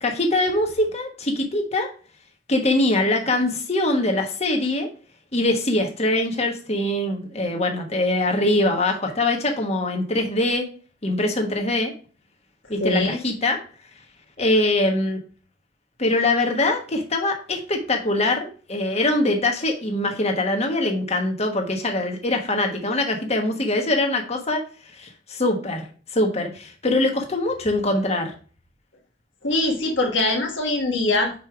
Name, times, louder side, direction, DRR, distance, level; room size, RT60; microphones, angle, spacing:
voice 1, 0.0-1.9 2.5-4.9 5.3-10.7 11.0-11.9 12.7-13.6 14.4-15.2 16.0-24.6 25.0-25.9 26.1-28.3, left 2 dB, 35° left, 3 dB, 1.2 m, -23 dB
voice 2, 12.8-13.2 29.4-31.3, left 2 dB, 80° left, 1 dB, 1.4 m, -22 dB
5.5 x 4.7 x 4.6 m, 0.39 s
head